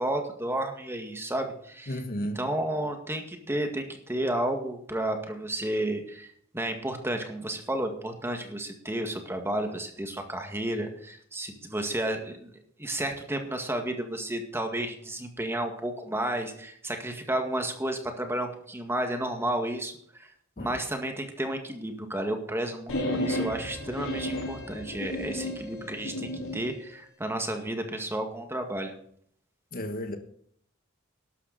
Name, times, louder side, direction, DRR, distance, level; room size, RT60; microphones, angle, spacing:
voice 1, 0.0-2.0 2.3-12.5 12.8-20.3 20.6-28.9, right 1 dB, 10° right, 1.9 m, -32 dB
voice 2, 1.9-2.4 20.6-20.8 29.7-30.2, equal, 45° left, 1.5 m, -33 dB
sound 1, 22.9-26.6, left 1 dB, 75° left, 4.1 m, -33 dB
13.0 x 11.5 x 4.2 m
head